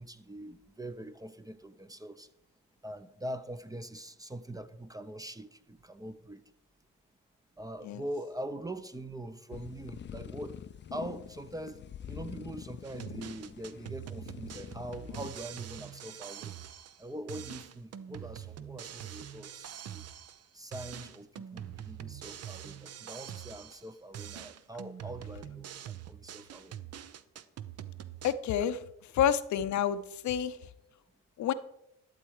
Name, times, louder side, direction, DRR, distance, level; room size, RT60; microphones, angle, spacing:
voice 1, 0.0-2.3 2.8-6.4 7.6-10.6 10.9-16.5 17.0-20.1 20.5-26.8, right 1 dB, 10° right, 0.6 m, -43 dB
sound 1, 9.5-15.3, left 9 dB, 40° left, 0.4 m, -45 dB
sound 2, 12.8-17.0 17.3-20.5 20.7-23.9 24.1-28.3, right 10 dB, 55° right, 0.7 m, -44 dB
voice 2, 28.2-30.7 31.4-31.5, left 9 dB, 70° left, 0.7 m, -29 dB
12.0 x 7.5 x 4.8 m
cardioid pair, 90°, 30 cm